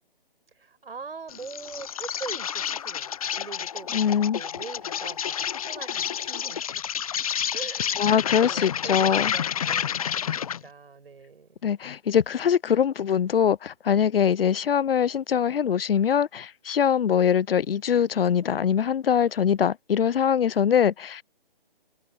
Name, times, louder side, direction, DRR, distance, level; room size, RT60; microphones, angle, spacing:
voice 1, 0.6-6.8 7.5-8.1 8.4-11.6, right 5 dB, 80° right, 5.4 m, -42 dB
Insect, 1.3-10.7, left 9 dB, 40° left, 1.0 m, -30 dB
voice 2, 3.9-4.4 8.0-9.3 11.6-21.2, left 8 dB, 75° left, 0.6 m, -23 dB
hypercardioid pair, 160°, 29 cm